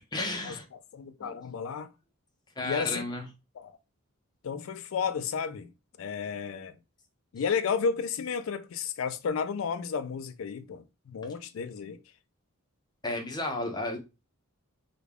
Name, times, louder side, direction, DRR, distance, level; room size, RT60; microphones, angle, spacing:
voice 1, 0.1-0.7 1.2-1.3 2.6-3.2 13.0-14.0, left 2 dB, 20° left, 0.6 m, -33 dB
voice 2, 0.9-1.9 2.6-3.0 3.6-3.7 4.4-5.7 6.0-6.7 7.3-12.0, left 6 dB, 65° left, 0.4 m, -32 dB
3.5 x 2.2 x 3.3 m
head